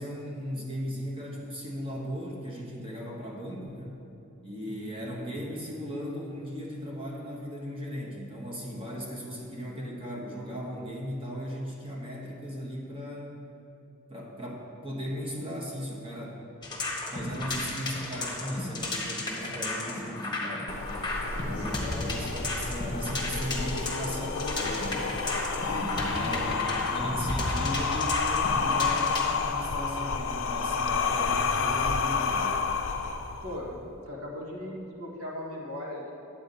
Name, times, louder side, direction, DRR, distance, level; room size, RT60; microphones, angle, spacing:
voice 1, 0.0-4.0 4.4-13.3 14.1-16.4 17.1-20.8 21.4-25.2 25.6-32.6, equal, 25° right, -4 dB, 1.3 m, -37 dB
voice 2, 4.7-5.0 21.6-22.1 26.1-26.8 33.4-36.1, left 1 dB, 75° right, -3 dB, 1.6 m, -39 dB
sound 1, 16.6-29.3, left 2 dB, 20° left, 1.3 m, -34 dB
sound 2, 20.7-33.7, left 5 dB, 65° left, 0.5 m, -30 dB
9.2 x 8.7 x 4.1 m, 2.7 s
head